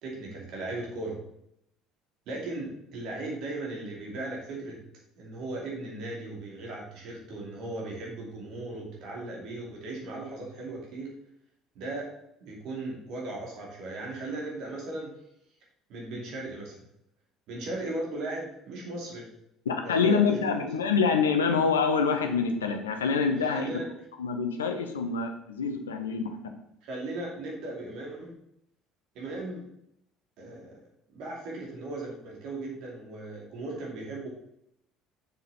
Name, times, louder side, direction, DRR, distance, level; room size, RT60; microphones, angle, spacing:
voice 1, 0.0-1.2 2.3-4.8 5.2-11.1 11.7-12.1 12.4-15.1 15.9-16.8 17.5-19.3 19.8-20.8 23.5-23.9 26.8-28.3 29.1-29.6 30.4-30.8 31.1-34.3, right 2 dB, 55° right, -2 dB, 2.7 m, -37 dB
voice 2, 19.7-23.7 24.2-26.4, left 5 dB, 75° left, 6 dB, 1.0 m, -26 dB
7.1 x 6.8 x 4.2 m, 0.76 s
figure-of-eight pair, 60°, 0 cm